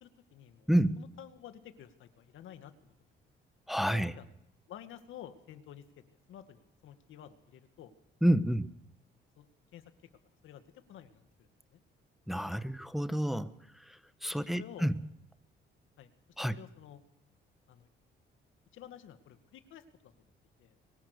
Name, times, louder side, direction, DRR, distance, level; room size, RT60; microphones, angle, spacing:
voice 1, 0.0-0.7 1.0-2.9 3.9-4.3 4.7-5.8 6.3-7.9 9.4-9.9 10.4-10.6 10.9-11.8 14.3-14.9 16.0-16.1 16.5-17.0 17.7-17.9 18.7-20.3 20.6-20.7, left 10 dB, 80° left, 9 dB, 2.1 m, -51 dB
voice 2, 0.7-1.0 3.7-4.1 8.2-8.7 12.3-14.9 16.4-16.5, right 1 dB, ahead, 12 dB, 1.1 m, -29 dB
23.0 x 19.5 x 6.7 m, 0.78 s
cardioid pair, 90°, 20 cm